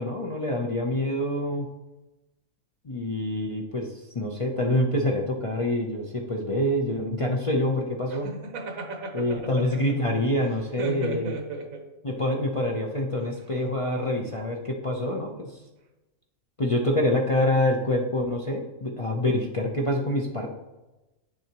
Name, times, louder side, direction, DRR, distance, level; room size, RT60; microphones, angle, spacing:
voice 1, 0.0-1.6 2.8-8.3 9.1-11.3 12.0-15.6 16.6-20.5, left 1 dB, 35° left, -1 dB, 0.5 m, -26 dB
voice 2, 8.1-9.9 10.8-11.9 13.2-13.3, right 2 dB, 85° right, 4 dB, 1.5 m, -35 dB
9.4 x 6.5 x 2.9 m, 1.0 s
omnidirectional pair, 1.4 m